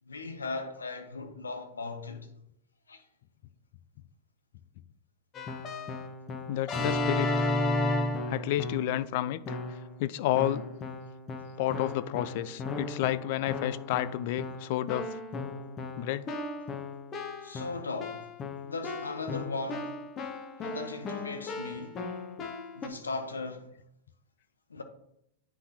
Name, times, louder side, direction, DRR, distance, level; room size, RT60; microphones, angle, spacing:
voice 1, 0.0-2.3 2.9-3.0 17.4-18.3 18.6-20.0 20.6-22.0 22.7-23.7 24.7-24.8, left 3 dB, 85° left, 0.8 m, -38 dB
Keyboard (musical), 5.3-9.0 9.5-10.0 10.3-22.9, left 2 dB, 30° left, 1.0 m, -35 dB
voice 2, 6.5-7.5 8.3-10.7 11.6-15.2 16.0-16.4, left 13 dB, 55° left, 0.4 m, -31 dB
9.7 x 4.1 x 2.9 m
figure-of-eight pair, 95°, 0 cm